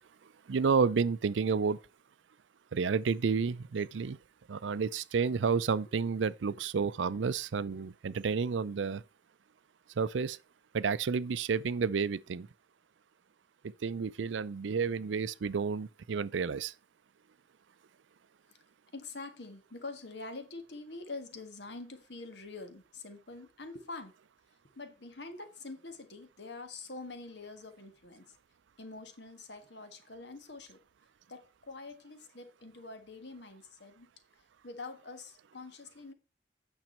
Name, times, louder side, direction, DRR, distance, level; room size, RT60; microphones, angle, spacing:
voice 1, 0.5-1.8 2.7-4.2 4.5-9.0 10.0-10.4 10.7-12.5 13.8-16.7, right 5 dB, 85° right, 0.5 m, -30 dB
voice 2, 18.9-24.1 24.7-28.4 28.8-30.8 31.3-34.1 34.6-36.1, left 3 dB, 70° left, 1.6 m, -45 dB
9.1 x 6.2 x 4.3 m
head